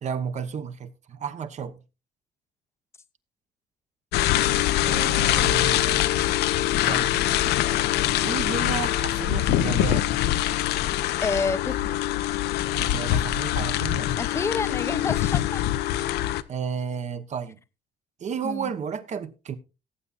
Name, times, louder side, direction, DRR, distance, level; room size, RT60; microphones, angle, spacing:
voice 1, 0.0-1.8 4.8-6.0 6.8-7.2 8.2-10.2 12.7-14.2 16.5-17.6 18.2-19.6, right 7 dB, 45° right, 1.0 m, -32 dB
sound 1, 4.1-16.4, left 13 dB, 80° left, 0.6 m, -24 dB
voice 2, 11.2-12.0 14.2-15.6 18.4-18.7, left 4 dB, 15° left, 0.6 m, -29 dB
18.0 x 8.3 x 2.4 m
cardioid pair, 110°, 17 cm